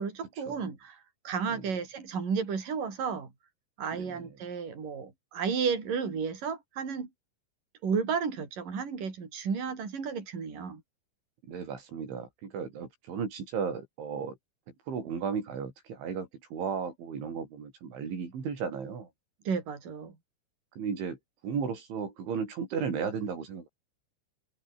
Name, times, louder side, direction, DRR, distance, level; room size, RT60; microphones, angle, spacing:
voice 1, 0.0-3.3 3.8-7.1 7.8-10.8 19.4-20.2, right 6 dB, 45° right, 6.8 m, -33 dB
voice 2, 3.9-4.3 11.5-14.4 14.9-19.1 20.8-21.2 21.4-23.7, right 6 dB, 85° right, 7.9 m, -35 dB
omnidirectional pair, 5.3 m